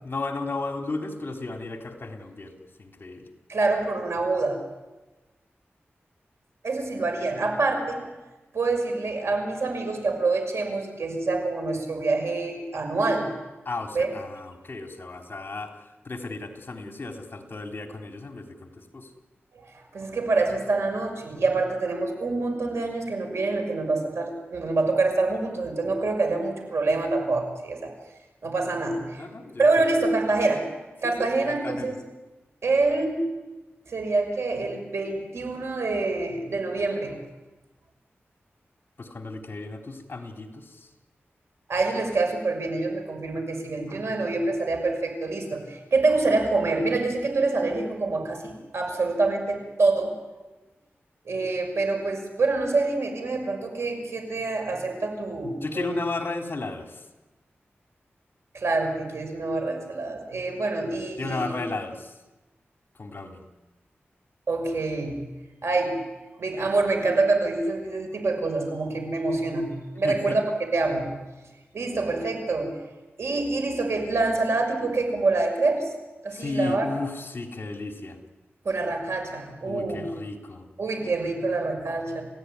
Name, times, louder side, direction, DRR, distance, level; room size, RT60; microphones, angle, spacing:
voice 1, 0.0-2.5 2.8-3.3 13.7-15.7 16.0-19.1 29.2-29.9 31.0-31.9 39.0-40.9 55.6-57.0 61.2-62.1 63.0-63.4 70.0-70.4 76.3-78.2 79.6-80.6, left 3 dB, 50° left, 4 dB, 3.8 m, -34 dB
voice 2, 3.5-4.6 6.6-8.0 8.5-13.3 13.9-14.1 19.5-27.9 28.4-29.3 29.6-30.6 31.0-32.0 32.6-33.3 33.9-37.2 41.7-50.2 51.3-56.0 58.5-61.6 64.5-65.2 65.6-66.0 66.4-70.4 70.7-71.1 71.7-72.8 73.2-75.9 76.2-76.9 78.6-80.1 80.8-82.2, right 3 dB, 75° right, 4 dB, 6.2 m, -26 dB
29.5 x 16.0 x 9.8 m, 1.1 s
wide cardioid pair, 85°, 4 cm